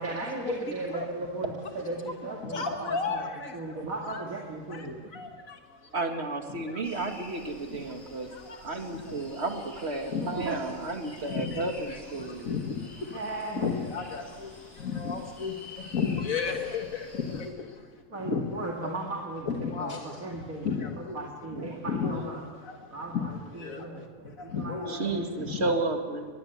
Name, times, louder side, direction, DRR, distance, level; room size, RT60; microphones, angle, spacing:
voice 1, 0.0-3.3 3.5-5.0 10.2-10.6 13.1-13.7 18.1-19.5 19.8-20.7 21.1-22.4 22.9-25.2, right 3 dB, 80° right, -1 dB, 2.7 m, -36 dB
voice 2, 2.4-3.9 4.1-4.2 4.7-5.9 6.6-6.8 7.8-8.7 8.9-9.3 10.1-10.6 11.1-13.2 13.5-18.6 18.8-18.9 19.5-21.2 21.8-25.1 25.5-25.6, left 5 dB, 75° left, 4 dB, 2.1 m, -34 dB
voice 3, 5.9-8.3 8.6-12.4 21.5-21.8 24.9-26.3, right 2 dB, 50° right, 4 dB, 2.5 m, -32 dB
sound 1, 6.8-17.5, left 2 dB, 55° left, 5.4 m, -49 dB
22.5 x 21.0 x 8.1 m, 1.5 s
omnidirectional pair, 1.4 m